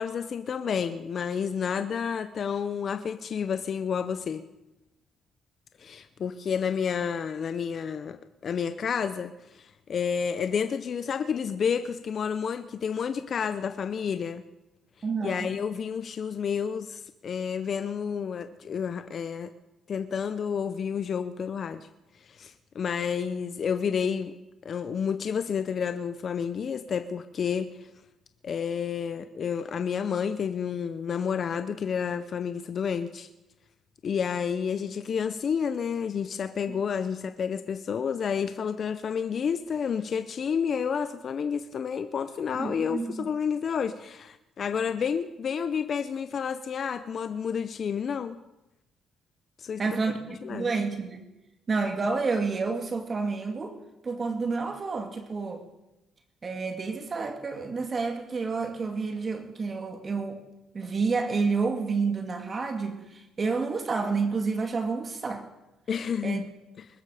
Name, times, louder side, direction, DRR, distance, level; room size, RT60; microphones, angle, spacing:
voice 1, 0.0-4.4 5.8-14.4 15.2-19.5 19.9-21.9 22.1-24.4 24.6-27.9 28.4-33.3 34.0-48.4 49.6-50.0 50.4-50.7 65.9-66.5, left 7 dB, 55° left, 11 dB, 0.7 m, -30 dB
voice 2, 15.0-15.5 42.6-43.3 49.8-50.1 50.5-51.3 51.7-53.8 54.0-55.7 56.4-60.4 60.7-65.5 66.2-66.4, right 4 dB, 40° right, 4 dB, 2.2 m, -29 dB
21.5 x 13.0 x 5.0 m, 0.96 s
supercardioid pair, 70°, 0 cm